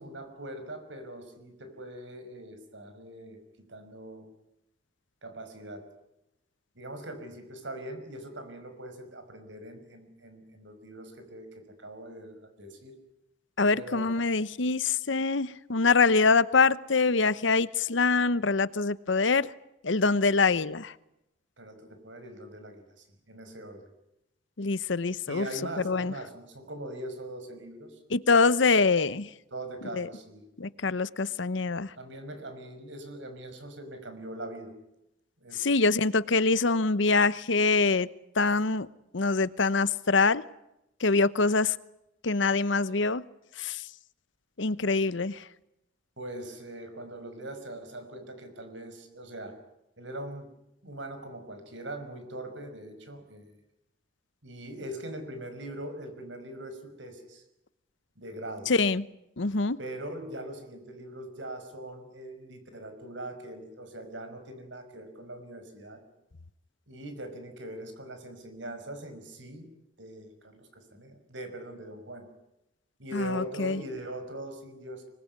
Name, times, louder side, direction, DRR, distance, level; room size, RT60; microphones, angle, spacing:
voice 1, 0.0-4.3 5.2-5.9 6.8-13.0 13.7-14.1 21.6-23.9 25.3-28.0 29.5-30.4 32.0-34.7 35.4-35.6 46.2-49.5 50.0-50.5 50.8-53.5 54.4-57.4 58.2-58.7 59.8-66.0 66.9-69.7 70.0-72.3 73.0-75.1, right 1 dB, 70° right, 8 dB, 5.5 m, -41 dB
voice 2, 13.6-19.5 19.8-20.9 24.6-25.5 25.8-26.1 28.1-29.3 30.0-30.1 30.6-31.9 35.5-38.1 38.4-38.9 39.1-40.4 41.0-41.7 42.2-43.2 43.6-43.8 44.6-45.4 58.7-59.0 59.4-59.8 73.1-73.8, left 4 dB, 70° left, 17 dB, 0.9 m, -24 dB
25.0 x 20.5 x 9.6 m, 0.88 s
head